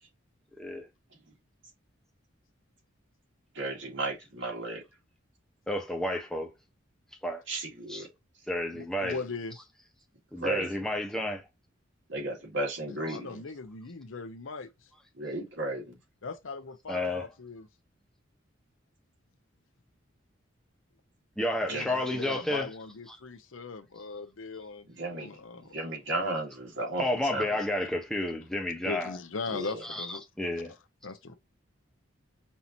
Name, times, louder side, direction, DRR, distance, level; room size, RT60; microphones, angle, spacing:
voice 1, 3.5-4.8 7.5-8.1 10.4-10.7 12.1-13.4 15.2-16.0 21.7-21.8 24.9-25.4 25.7-27.5 29.5-29.8, right 2 dB, 70° right, 2.2 m, -34 dB
voice 2, 5.7-6.5 7.2-7.4 7.9-8.1 8.5-9.2 10.3-11.4 13.1-13.2 16.9-17.3 21.4-22.7 23.1-23.2 27.0-29.2 29.6-30.7, left 1 dB, 5° left, 0.9 m, -31 dB
voice 3, 8.7-9.6 12.9-14.9 16.2-17.7 21.7-24.9 25.2-25.7 28.8-30.2 31.0-31.3, left 4 dB, 90° left, 0.7 m, -39 dB
5.5 x 2.9 x 2.6 m
head